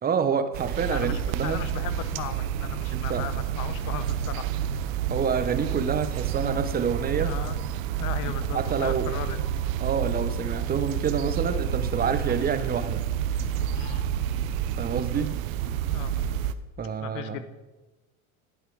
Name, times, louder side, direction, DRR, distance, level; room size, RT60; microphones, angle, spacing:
voice 1, 0.0-1.6 2.9-3.2 5.1-7.3 8.3-9.1 9.8-13.1 14.8-15.4 16.8-17.4, right 6 dB, 25° right, 11 dB, 0.7 m, -28 dB
sound 1, 0.5-16.5, right 9 dB, 80° right, 0.7 m, -29 dB
voice 2, 0.9-4.5 7.2-7.6 8.0-9.4 13.7-14.1 15.9-16.2 17.0-17.4, left 11 dB, 50° left, 12 dB, 0.9 m, -37 dB
10.0 x 8.2 x 4.6 m, 1.2 s
supercardioid pair, 105°, 40 cm